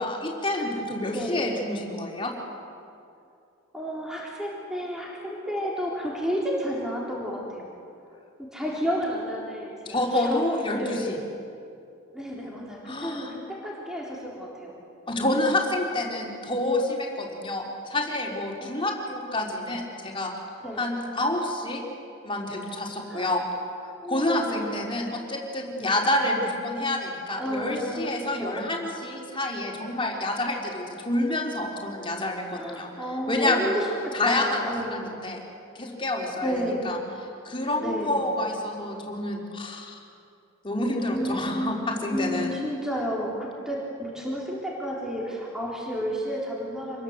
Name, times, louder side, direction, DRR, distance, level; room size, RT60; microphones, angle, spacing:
voice 1, 0.0-2.3 9.9-11.2 12.8-13.3 15.1-20.3 20.8-21.8 22.2-23.5 24.1-32.9 33.3-33.7 34.1-35.4 35.7-37.0 37.4-40.0 40.6-42.5, left 1 dB, 25° left, -1 dB, 4.1 m, -28 dB
voice 2, 1.1-1.6 3.7-7.7 8.4-10.4 10.7-11.2 12.1-14.7 18.6-18.7 20.6-20.8 23.1-23.4 24.0-24.8 27.4-28.7 32.5-35.3 36.4-37.1 37.8-38.4 41.1-47.0, equal, 5° right, -4 dB, 3.7 m, -32 dB
27.5 x 21.5 x 8.1 m, 2.5 s
head